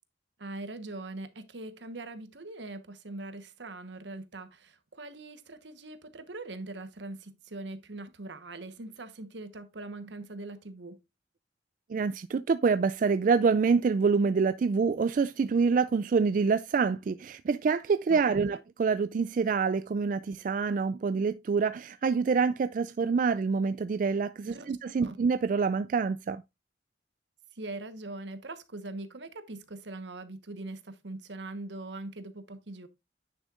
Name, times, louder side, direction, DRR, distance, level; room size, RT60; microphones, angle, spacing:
voice 1, 0.4-11.0 18.1-18.6 24.4-24.7 25.0-25.2 27.5-32.9, right 2 dB, 80° right, 1.1 m, -42 dB
voice 2, 11.9-26.4, right 5 dB, 45° right, 0.3 m, -26 dB
9.9 x 6.3 x 2.4 m
head